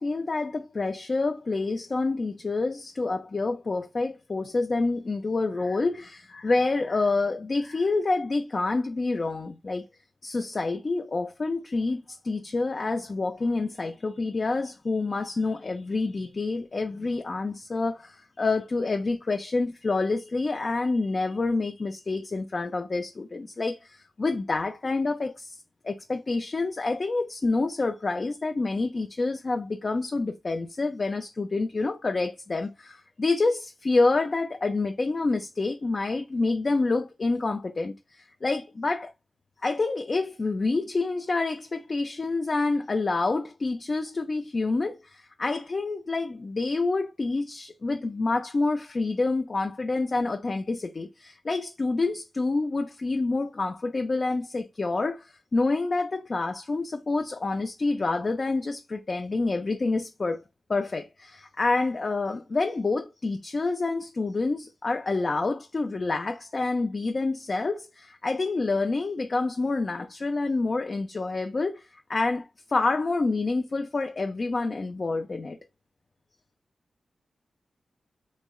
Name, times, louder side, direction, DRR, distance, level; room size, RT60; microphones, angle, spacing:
voice 1, 0.0-9.9 10.2-39.1 39.6-60.4 60.7-75.6, left 3 dB, 45° left, 0.4 m, -28 dB
3.7 x 3.0 x 2.3 m
wide cardioid pair, 80°, 0 cm